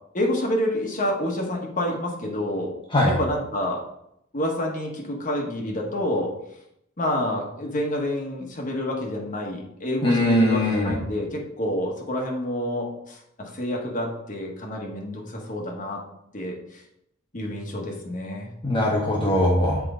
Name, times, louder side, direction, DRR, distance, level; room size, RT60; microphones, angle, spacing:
voice 1, 0.1-2.7 3.1-3.8 4.3-6.3 7.0-16.0 16.3-16.8 17.3-18.5, left 1 dB, 40° left, 0 dB, 1.4 m, -28 dB
voice 2, 10.0-10.9 18.6-19.8, left 1 dB, 25° left, -3 dB, 1.1 m, -20 dB
7.7 x 4.6 x 3.8 m, 0.77 s
head